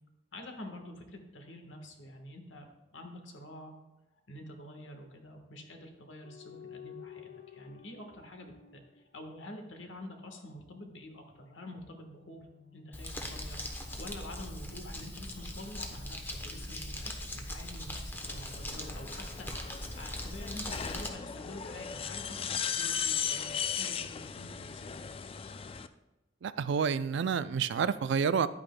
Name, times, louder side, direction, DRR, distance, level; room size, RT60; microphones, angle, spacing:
voice 1, 0.3-2.6 2.9-3.7 4.3-12.5 12.7-25.1, left 1 dB, 75° left, 4 dB, 1.4 m, -47 dB
sound 1, 6.2-9.9 11.3-15.1 15.9-17.1, left 9 dB, 60° left, 0.7 m, -54 dB
Crumpling crinkling, 12.9-21.1, left 1 dB, 10° left, 0.9 m, -40 dB
sound 2, 18.2-25.9, left 8 dB, 30° left, 0.3 m, -37 dB
voice 2, 26.4-28.5, right 6 dB, 65° right, 15 dB, 0.4 m, -29 dB
11.0 x 8.7 x 2.2 m, 1.0 s
head